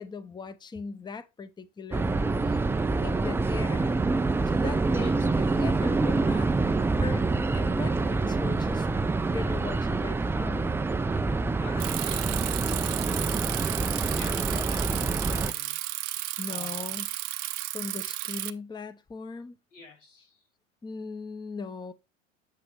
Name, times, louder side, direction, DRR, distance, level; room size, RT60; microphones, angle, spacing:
voice 1, 0.0-2.6 3.0-4.0 4.5-6.5 7.0-8.9 9.3-10.8 16.4-17.1 17.7-19.6 20.8-21.9, left 4 dB, 10° left, 0.7 m, -39 dB
sound 1, 1.9-15.5, right 3 dB, 5° right, 0.3 m, -26 dB
voice 2, 11.6-13.7 14.1-15.8 16.5-17.0 19.7-20.4, left 3 dB, 85° left, 3.6 m, -47 dB
Bicycle, 11.8-18.5, right 16 dB, 70° right, 0.7 m, -33 dB
8.3 x 6.0 x 3.1 m
hypercardioid pair, 80°, 37 cm